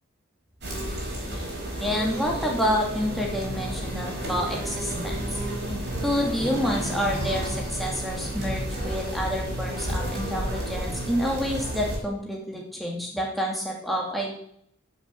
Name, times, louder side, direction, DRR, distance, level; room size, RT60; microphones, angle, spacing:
sound 1, 0.6-12.0, right 1 dB, 50° right, 4.4 m, -31 dB
voice 1, 1.8-5.3 6.0-14.3, equal, ahead, -2 dB, 2.6 m, -28 dB
9.5 x 7.5 x 7.8 m, 0.68 s
head